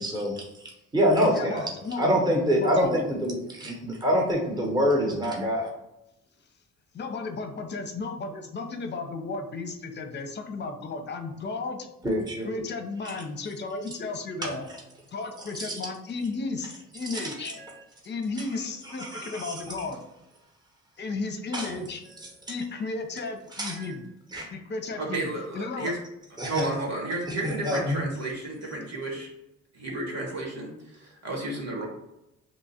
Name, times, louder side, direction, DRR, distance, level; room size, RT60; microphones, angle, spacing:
voice 1, 0.0-5.7 12.0-12.6 13.0-13.2 14.4-14.6 15.4-15.8 17.0-17.8 18.4-18.5 18.8-19.9 21.5-21.7 22.2-22.3 23.5-24.0 24.3-24.5 26.4-26.7 27.3-28.0, equal, 15° right, -2 dB, 1.0 m, -27 dB
voice 2, 1.3-2.1 2.6-2.9 6.9-11.9 12.5-14.6 15.1-17.5 18.0-20.0 21.0-22.0 22.5-24.0 24.5-25.9, left 3 dB, 35° left, 6 dB, 0.6 m, -34 dB
voice 3, 25.0-26.0 26.4-29.3 29.7-31.9, right 2 dB, 55° right, -1 dB, 1.5 m, -32 dB
2.9 x 2.4 x 4.1 m, 0.91 s
cardioid pair, 90°, 30 cm